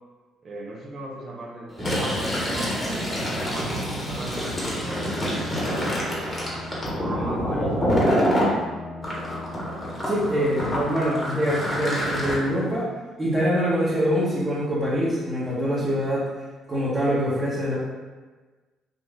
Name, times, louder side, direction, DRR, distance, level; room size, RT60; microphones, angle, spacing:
voice 1, 0.4-6.2 6.6-8.7, right 1 dB, 50° right, -2 dB, 0.8 m, -38 dB
Fill (with liquid), 1.7-8.5 9.0-12.3, equal, 25° left, 1.5 m, -26 dB
sound 1, 4.8-11.4, left 3 dB, 60° left, 0.9 m, -40 dB
voice 2, 10.1-12.9 13.2-16.2 16.7-17.8, equal, 30° right, -11 dB, 1.3 m, -24 dB
4.0 x 2.5 x 3.7 m, 1.3 s
hypercardioid pair, 55°, 0 cm